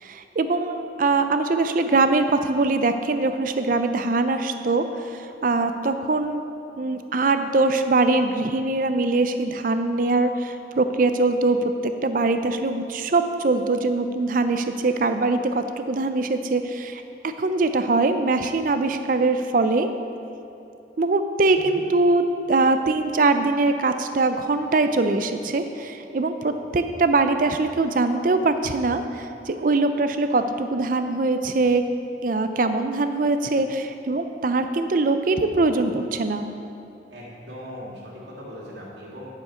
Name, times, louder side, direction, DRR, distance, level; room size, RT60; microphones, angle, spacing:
voice 1, 0.0-6.4 6.8-11.6 11.8-19.9 21.0-31.8 32.2-36.5, right 3 dB, 45° right, 9 dB, 0.5 m, -22 dB
voice 2, 37.1-39.3, equal, 70° right, -5 dB, 2.3 m, -39 dB
9.7 x 7.0 x 4.4 m, 2.8 s
head